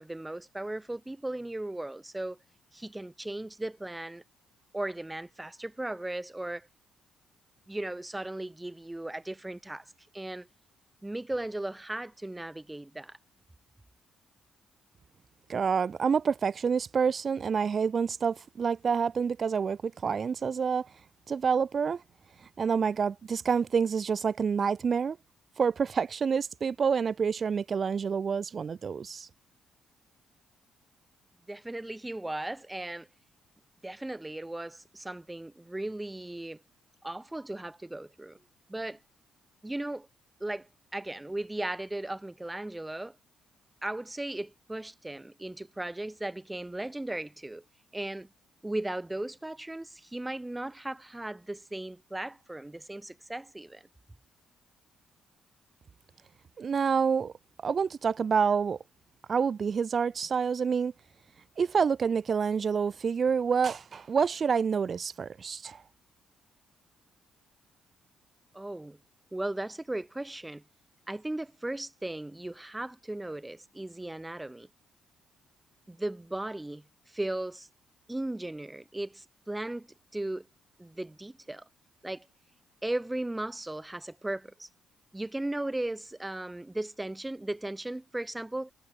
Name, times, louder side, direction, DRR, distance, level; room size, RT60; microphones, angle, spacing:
voice 1, 0.0-2.4 2.7-4.2 4.7-6.7 7.7-10.5 11.0-13.2 31.5-33.1 33.8-36.6 37.0-38.4 38.7-39.0 39.6-40.1 40.4-43.1 43.8-47.6 47.9-48.3 48.6-53.8 68.5-69.0 69.3-70.6 71.1-74.7 75.9-77.7 78.1-79.9 80.1-80.5 80.8-81.7 82.0-82.3 82.8-84.7 85.1-88.7, right 1 dB, 10° right, 2.9 m, -36 dB
voice 2, 15.5-20.9 21.3-22.0 22.6-25.2 25.6-29.3 56.6-57.3 57.6-58.8 59.3-60.9 61.6-65.8, right 6 dB, 45° right, 0.9 m, -28 dB
cardioid pair, 90°, 0 cm